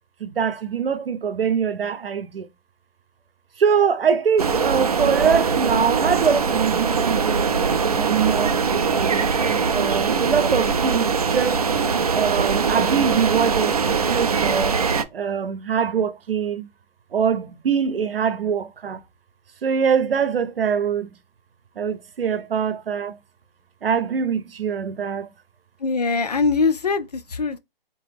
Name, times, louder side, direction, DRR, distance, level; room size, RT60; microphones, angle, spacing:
voice 1, 0.2-2.5 3.6-7.6 8.0-9.3 9.7-11.6 12.1-14.7 15.1-16.7 17.1-19.0 19.6-21.1 21.8-23.2 23.8-25.3, right 7 dB, 75° right, 0.8 m, -23 dB
sound 1, 4.4-15.0, right 5 dB, 40° right, 0.4 m, -22 dB
voice 2, 25.8-27.6, left 4 dB, 45° left, 0.4 m, -22 dB
3.7 x 2.9 x 3.3 m
hypercardioid pair, 165°, 29 cm